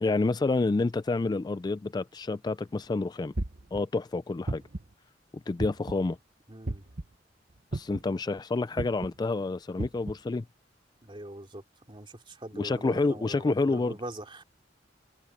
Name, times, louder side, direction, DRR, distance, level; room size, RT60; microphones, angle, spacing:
voice 1, 0.0-3.3 3.7-4.6 5.5-6.2 7.7-10.4 12.5-14.0, left 3 dB, 25° left, 0.3 m, -28 dB
sound 1, 3.4-3.8 4.5-4.9 5.6-6.0 6.7-7.0 7.7-8.1 8.8-9.1 9.8-10.1, right 2 dB, 50° right, 1.0 m, -33 dB
voice 2, 6.5-6.8 11.0-11.6 11.9-14.4, right 1 dB, 30° right, 3.0 m, -42 dB
head